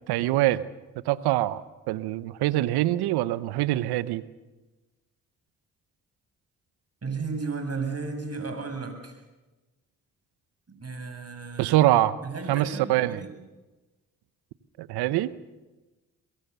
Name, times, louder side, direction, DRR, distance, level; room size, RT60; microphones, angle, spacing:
voice 1, 0.1-0.6 1.0-4.2 11.6-12.2 12.5-13.2 14.8-15.3, right 15 dB, 85° right, 16 dB, 1.0 m, -24 dB
voice 2, 7.0-9.2 10.7-11.8 12.2-13.3, right 4 dB, 40° right, 5 dB, 7.2 m, -34 dB
24.0 x 22.0 x 6.8 m, 1.1 s
supercardioid pair, 50°, 37 cm